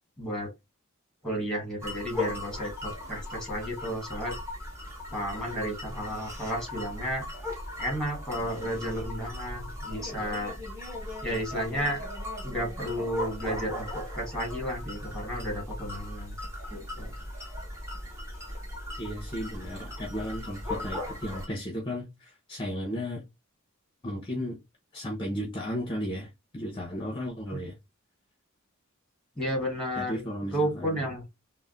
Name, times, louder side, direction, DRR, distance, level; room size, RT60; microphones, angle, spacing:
voice 1, 0.2-0.5 1.2-4.4 5.1-7.3 7.8-10.5 11.2-12.0 12.4-16.3 16.7-17.1 29.4-30.3 30.5-31.3, equal, ahead, 1.4 m, -32 dB
sound 1, 1.8-21.5, left 1 dB, 15° right, 1.0 m, -38 dB
voice 2, 19.0-23.2 24.0-24.6 24.9-27.7 30.0-31.0, equal, 25° left, 0.7 m, -34 dB
3.4 x 2.1 x 2.4 m
head